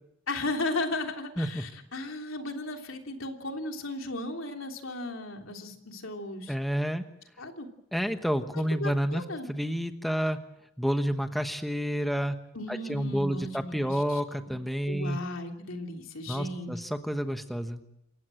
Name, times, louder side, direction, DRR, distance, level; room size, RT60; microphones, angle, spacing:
voice 1, 0.3-6.5 7.4-7.7 8.5-9.5 12.5-14.2 14.9-16.8, left 2 dB, 75° left, 3 dB, 3.2 m, -35 dB
voice 2, 6.5-7.0 7.9-9.2 9.5-10.4 10.8-12.4 12.7-15.2 16.3-17.8, equal, ahead, 7 dB, 1.1 m, -29 dB
28.0 x 15.5 x 7.8 m, 0.83 s
head